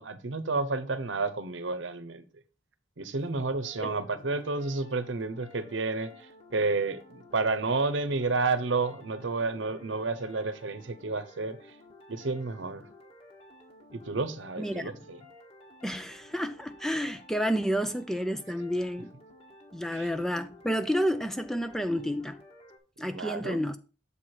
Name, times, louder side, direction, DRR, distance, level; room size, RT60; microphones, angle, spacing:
voice 1, 0.0-2.2 3.0-11.6 12.1-12.9 13.9-15.2 19.9-20.1 23.1-23.6, right 3 dB, 70° right, 0.8 m, -31 dB
sound 1, 3.6-22.8, left 1 dB, 30° left, 1.4 m, -53 dB
voice 2, 14.6-14.9 15.8-19.1 19.7-22.4 23.0-23.8, equal, ahead, 0.4 m, -30 dB
7.1 x 4.4 x 4.7 m
head